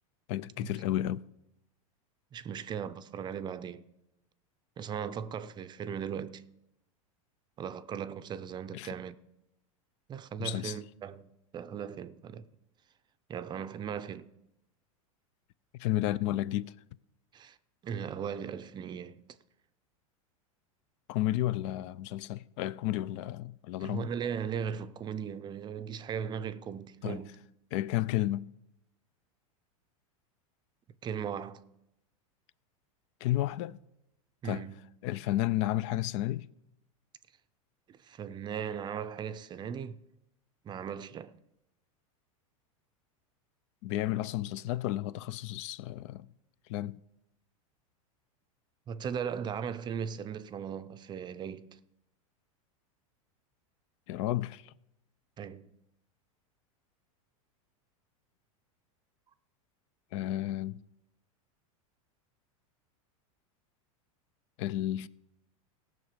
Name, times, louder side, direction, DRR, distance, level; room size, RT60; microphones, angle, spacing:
voice 1, 0.3-1.2 8.7-9.0 10.4-10.8 15.8-16.7 21.1-24.1 27.0-27.2 27.7-28.5 33.2-33.8 34.4-34.7 35.0-36.5 43.8-46.3 46.7-47.0 54.1-54.7 60.1-60.8 64.6-65.1, left 14 dB, 55° left, 0.4 m, -32 dB
voice 2, 2.3-3.8 4.8-6.4 7.6-9.2 10.1-12.4 13.3-14.3 17.3-17.6 17.8-19.2 23.8-27.4 31.0-31.6 34.4-34.8 37.9-40.0 40.6-41.3 48.9-51.7 55.4-55.7, right 7 dB, 25° right, 0.5 m, -38 dB
17.5 x 6.3 x 5.1 m
supercardioid pair, 120°, 18 cm